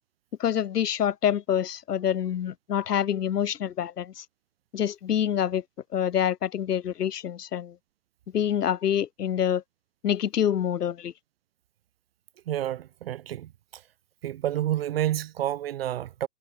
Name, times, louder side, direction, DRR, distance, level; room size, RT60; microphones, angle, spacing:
voice 1, 0.4-4.2 4.7-5.6 5.9-7.7 8.3-9.6 10.0-11.1, left 9 dB, 70° left, 3.2 m, -26 dB
voice 2, 12.5-13.8 14.2-16.3, right 12 dB, 40° right, 0.7 m, -29 dB
hypercardioid pair, 155°, 48 cm